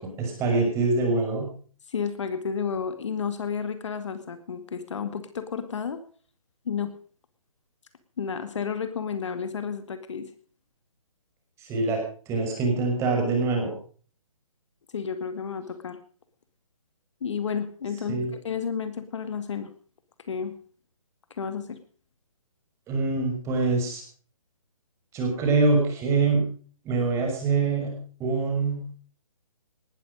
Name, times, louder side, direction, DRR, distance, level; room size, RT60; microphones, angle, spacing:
voice 1, 0.0-1.5 11.6-12.0 12.3-13.7 18.1-18.3 22.9-24.0 25.1-26.4 26.8-27.9 28.2-28.8, right 3 dB, 15° right, 2 dB, 6.1 m, -24 dB
voice 2, 1.9-6.0 6.7-6.9 8.2-10.3 14.9-16.0 17.2-19.7 20.3-20.6 21.3-21.8, left 6 dB, 55° left, 10 dB, 2.2 m, -31 dB
19.0 x 13.0 x 5.1 m, 0.43 s
figure-of-eight pair, 145°, 18 cm